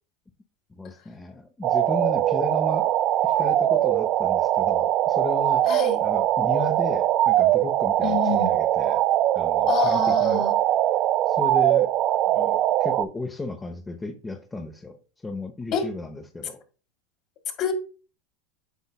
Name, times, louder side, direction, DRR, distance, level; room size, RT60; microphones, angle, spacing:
voice 1, 0.7-2.9 3.2-5.7 6.0-9.0 9.3-10.5 11.3-11.9 12.3-15.0 15.2-16.6, left 2 dB, 15° left, 0.7 m, -34 dB
sound 1, 1.6-13.0, right 13 dB, 45° right, 0.3 m, -22 dB
voice 2, 5.6-6.0 8.0-8.5 9.7-10.5 15.7-15.8 17.6-17.7, left 7 dB, 50° left, 1.7 m, -26 dB
8.1 x 5.2 x 2.2 m
hypercardioid pair, 105°, 0 cm